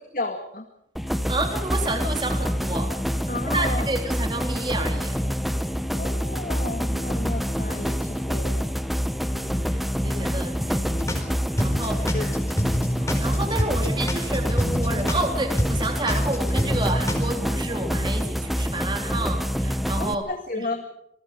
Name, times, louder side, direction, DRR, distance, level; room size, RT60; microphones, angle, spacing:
voice 1, 0.1-0.7 3.3-3.9 5.9-8.7 12.1-12.3 20.0-20.8, left 2 dB, 50° left, 4 dB, 2.1 m, -32 dB
sound 1, 1.0-20.2, equal, ahead, 1.1 m, -26 dB
voice 2, 1.3-2.9 3.5-5.2 9.3-11.0 11.3-12.2 13.0-20.2 20.5-20.7, right 2 dB, 25° right, 4 dB, 3.4 m, -30 dB
sound 2, 10.9-11.3 11.6-15.3 15.6-17.3, equal, 15° left, 4.5 m, -26 dB
28.0 x 21.5 x 5.3 m, 0.77 s
head